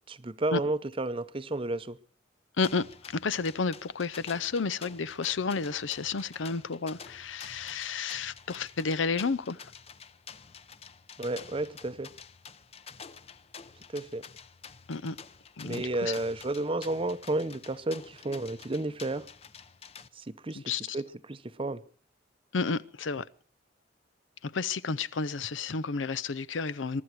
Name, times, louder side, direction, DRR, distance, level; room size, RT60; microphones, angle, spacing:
voice 1, 0.1-2.0 11.2-12.1 13.9-14.3 15.6-19.3 20.1-21.8, right 2 dB, 30° right, 0.7 m, -32 dB
sound 1, 2.6-20.1, left 6 dB, 30° left, 0.7 m, -49 dB
voice 2, 3.1-9.6 14.9-15.2 15.6-16.1 20.5-21.0 22.5-23.2 24.4-27.0, left 4 dB, 90° left, 0.7 m, -31 dB
23.5 x 12.5 x 4.7 m
head